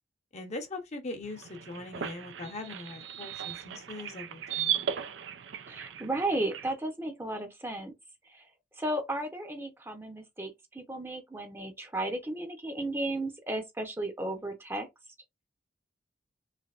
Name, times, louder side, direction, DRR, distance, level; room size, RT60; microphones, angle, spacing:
voice 1, 0.3-4.9, left 2 dB, 40° left, 0.8 m, -41 dB
sound 1, 1.2-6.7, right 9 dB, 80° right, 0.4 m, -37 dB
voice 2, 5.7-7.9 8.3-8.5 8.8-14.9, right 1 dB, 15° right, 0.7 m, -34 dB
3.3 x 3.3 x 2.4 m
head